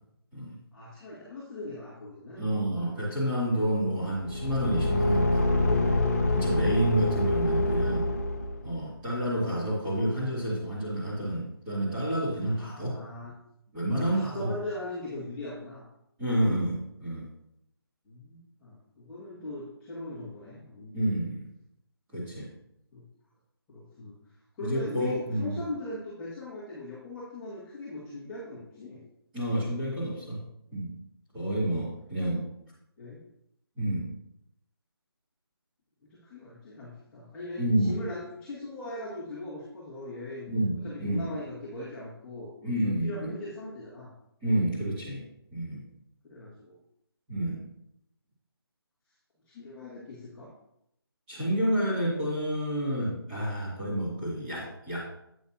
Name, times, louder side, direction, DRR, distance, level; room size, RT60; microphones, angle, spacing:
voice 1, 0.7-2.5 12.5-13.3 13.9-15.8 18.0-21.0 22.9-23.0 23.7-24.1 24.6-29.0 32.2-32.4 33.0-33.2 36.1-40.5 40.7-44.1 46.2-46.8 49.4-50.5, left 2 dB, 10° left, -12 dB, 1.6 m, -40 dB
voice 2, 2.4-6.0 6.3-8.0 8.6-13.0 13.7-14.5 16.2-17.2 20.9-21.4 22.1-22.5 24.6-25.6 29.3-30.4 30.7-30.9 31.3-32.4 33.8-34.0 37.6-37.9 40.5-41.2 42.6-43.3 44.4-45.2 45.5-45.8 47.3-47.7 51.3-55.0, right 1 dB, 10° right, -9 dB, 2.5 m, -29 dB
Car / Engine, 4.2-8.8, left 2 dB, 40° left, 0.8 m, -26 dB
9.0 x 8.7 x 2.8 m, 0.77 s
figure-of-eight pair, 170°, 13 cm